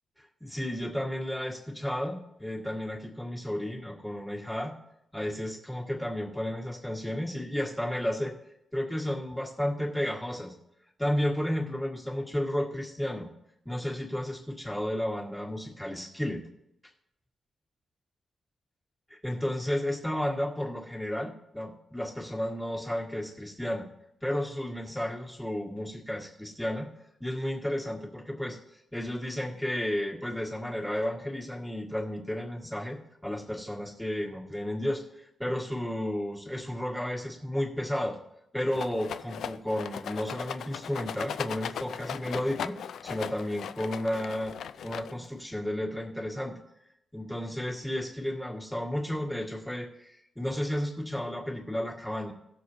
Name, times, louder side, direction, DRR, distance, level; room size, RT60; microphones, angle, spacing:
voice 1, 0.2-4.7 5.1-8.3 8.7-10.5 11.0-13.3 13.6-16.5 19.2-23.9 24.2-26.9 27.2-28.6 28.9-33.0 33.2-38.2 38.5-42.8 43.0-44.5 44.8-46.6 47.1-52.3, left 1 dB, 5° left, -3 dB, 1.7 m, -32 dB
Rattle, 38.7-45.4, left 8 dB, 80° left, 0.4 m, -38 dB
18.0 x 6.7 x 2.8 m, 0.82 s
wide cardioid pair, 160°, 0 cm